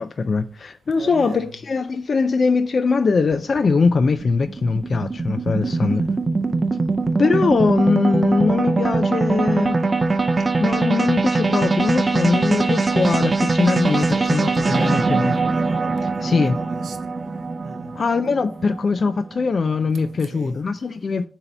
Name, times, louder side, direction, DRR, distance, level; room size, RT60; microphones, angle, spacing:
voice 1, 0.0-6.0 7.2-9.9 10.6-15.3 16.2-16.6 18.0-21.3, left 4 dB, 50° left, 0.3 m, -21 dB
voice 2, 0.9-1.6 5.6-6.1 13.8-17.0 17.6-17.9 19.9-20.6, right 5 dB, 90° right, 0.7 m, -38 dB
sound 1, 3.3-19.7, right 3 dB, 30° right, 0.5 m, -22 dB
6.9 x 2.8 x 5.3 m
wide cardioid pair, 115°, 0 cm